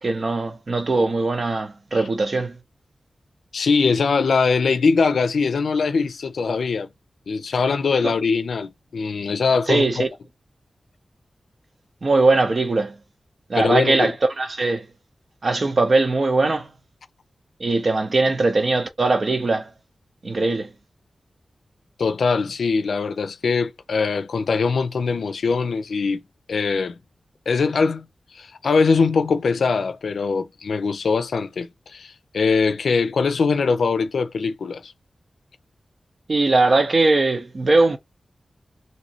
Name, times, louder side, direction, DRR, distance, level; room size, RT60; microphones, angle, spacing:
voice 1, 0.0-2.6 8.0-8.1 9.7-10.1 12.0-13.0 13.5-14.9 15.4-16.7 17.6-19.7 20.2-20.7 36.3-38.0, right 3 dB, 45° right, 0.6 m, -20 dB
voice 2, 3.5-6.9 7.3-10.0 13.5-14.2 22.0-26.2 26.5-27.0 27.5-34.9, left 4 dB, 85° left, 0.4 m, -22 dB
3.0 x 2.7 x 2.8 m
wide cardioid pair, 135°, 0 cm